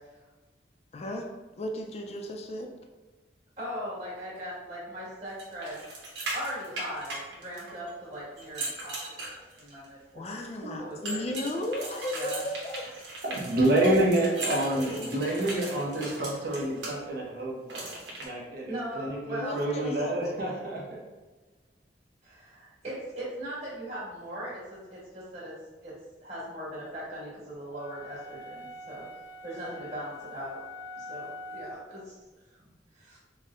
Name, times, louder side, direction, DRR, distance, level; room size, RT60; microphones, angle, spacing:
voice 1, 0.9-1.3 1.6-2.7 10.1-12.8 14.6-15.5 19.4-20.4, left 1 dB, 35° left, 3 dB, 0.4 m, -35 dB
voice 2, 3.6-5.8 6.3-10.3 10.8-11.2 12.1-12.4 18.7-19.7 22.2-25.5 25.8-25.9 26.2-29.0 29.4-30.6 30.9-32.1 32.5-32.7 32.9-33.2, right 1 dB, 40° right, -10 dB, 1.5 m, -39 dB
sound 1, 5.4-7.9 8.4-9.9 11.1-16.9 17.7-18.2, right 2 dB, 90° right, 0.9 m, -38 dB
voice 3, 13.2-21.0, right 1 dB, 60° right, -3 dB, 0.8 m, -28 dB
sound 2, 27.7-32.0, left 2 dB, 10° right, 0.8 m, -44 dB
4.2 x 2.1 x 2.4 m, 1.2 s
head